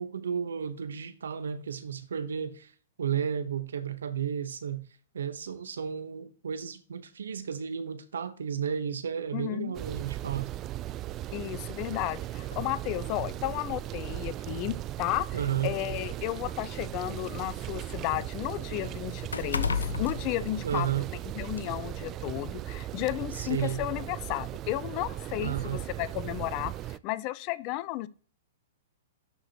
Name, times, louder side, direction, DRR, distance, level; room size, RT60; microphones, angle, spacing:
voice 1, 0.0-2.7 3.0-4.8 5.1-10.5 15.3-15.7 20.6-21.0 23.3-23.8 25.4-25.8, right 8 dB, 75° right, 1.0 m, -33 dB
voice 2, 9.3-9.7 11.3-20.9 21.3-28.1, left 16 dB, 40° left, 0.5 m, -33 dB
sound 1, 9.7-27.0, right 14 dB, 30° right, 0.3 m, -37 dB
sound 2, 12.5-12.7 13.7-13.8 14.3-14.4 15.4-17.3 17.7-21.1 21.5-21.7, left 6 dB, 85° left, 0.6 m, -35 dB
12.0 x 5.0 x 3.0 m
hypercardioid pair, 120°, 0 cm